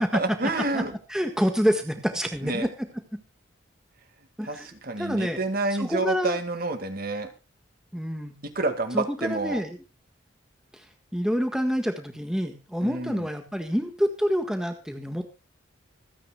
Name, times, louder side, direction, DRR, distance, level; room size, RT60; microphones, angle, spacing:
voice 1, 0.0-0.9 2.4-2.7 4.4-7.3 8.4-9.6 12.8-13.3, right 2 dB, 50° right, 7 dB, 2.1 m, -29 dB
voice 2, 1.1-2.7 3.1-3.2 4.4-4.7 5.0-5.4 5.8-6.4 7.9-8.4 8.9-9.8 10.7-10.8 11.1-15.3, equal, 5° right, 5 dB, 1.6 m, -27 dB
26.0 x 9.9 x 2.3 m, 0.29 s
head